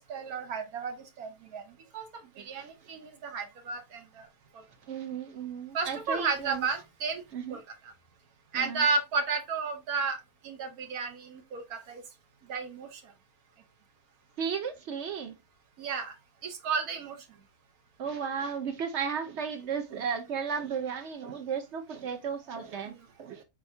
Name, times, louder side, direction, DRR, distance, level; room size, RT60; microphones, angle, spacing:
voice 1, 0.1-1.6 1.9-2.1 2.4-4.3 5.7-7.2 7.5-7.6 8.5-10.2 10.4-12.0 12.5-13.0 15.8-16.1 16.4-17.2 22.9-23.0, right 4 dB, 75° right, 1.4 m, -32 dB
voice 2, 4.9-6.7 7.3-7.6 8.5-8.9 14.4-15.3 18.0-23.4, right 6 dB, 55° right, 0.9 m, -34 dB
4.4 x 3.5 x 2.7 m
omnidirectional pair, 1.6 m